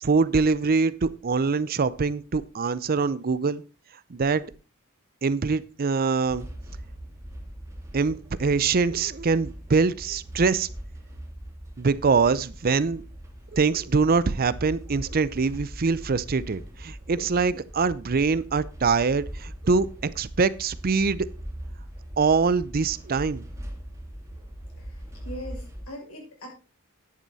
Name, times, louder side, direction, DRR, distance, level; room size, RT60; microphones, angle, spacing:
voice 1, 0.0-3.6 4.1-4.5 5.2-6.5 7.9-10.7 11.8-13.0 13.5-21.3 22.2-23.5, right 4 dB, 45° right, 18 dB, 0.5 m, -24 dB
sound 1, 6.2-25.8, equal, 15° right, 2.7 m, -41 dB
voice 2, 24.8-26.5, equal, 80° left, -1 dB, 6.4 m, -41 dB
10.5 x 9.1 x 4.1 m, 0.33 s
head